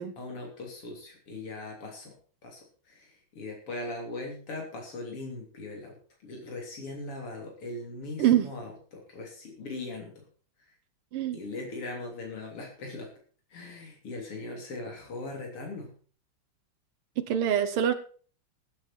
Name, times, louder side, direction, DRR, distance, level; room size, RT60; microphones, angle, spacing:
voice 1, 0.2-2.1 2.4-6.0 6.2-10.2 10.7-10.8 11.3-13.1 13.5-15.9, left 2 dB, 90° left, 1 dB, 4.2 m, -40 dB
voice 2, 17.2-17.9, right 10 dB, 85° right, 8 dB, 1.9 m, -25 dB
18.5 x 8.6 x 4.5 m, 0.42 s
omnidirectional pair, 2.4 m